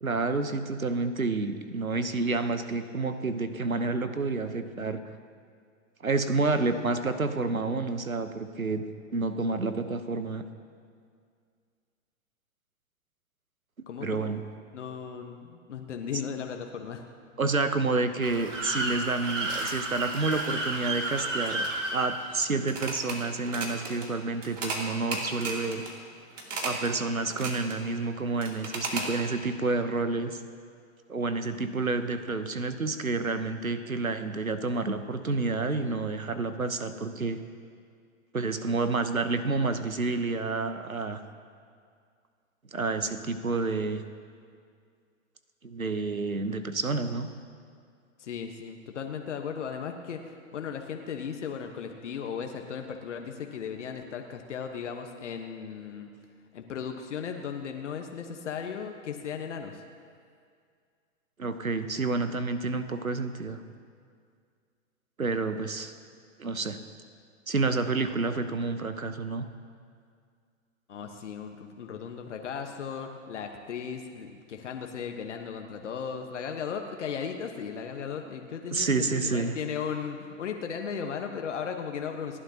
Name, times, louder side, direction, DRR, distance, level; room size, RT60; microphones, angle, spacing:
voice 1, 0.0-5.0 6.0-8.8 9.1-10.4 14.0-14.4 17.4-25.8 26.6-30.4 31.1-37.4 38.3-41.2 42.7-44.0 45.6-47.3 61.4-63.6 65.2-65.9 66.4-66.8 67.5-69.5 78.7-79.6, right 3 dB, 90° right, 10 dB, 1.1 m, -29 dB
voice 2, 13.9-14.3 14.7-17.1 48.2-56.1 56.5-59.8 70.9-82.4, left 7 dB, 60° left, 4 dB, 1.3 m, -36 dB
sound 1, 18.2-23.2 23.4-24.1 24.4-24.8 25.1-25.9 26.4-26.9 27.2-27.8 28.4-29.1, right 2 dB, 65° right, 2.7 m, -33 dB
29.0 x 11.5 x 2.9 m, 2.2 s
figure-of-eight pair, 110°, 40 cm